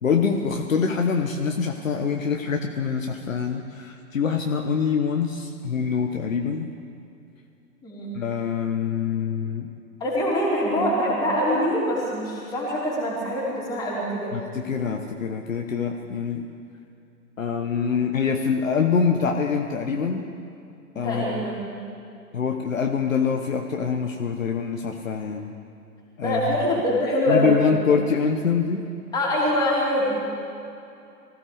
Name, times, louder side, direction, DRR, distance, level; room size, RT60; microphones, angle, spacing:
voice 1, 0.0-6.7 8.1-9.7 14.3-16.5 17.4-20.3 20.9-21.2 22.3-25.5 26.2-26.5 27.3-28.8, left 6 dB, 55° left, 3 dB, 1.3 m, -25 dB
voice 2, 7.8-8.2 10.0-14.3 20.9-21.8 26.2-27.6 29.1-30.2, equal, 10° left, -7 dB, 3.8 m, -24 dB
23.5 x 15.5 x 3.5 m, 2.6 s
figure-of-eight pair, 130°, 48 cm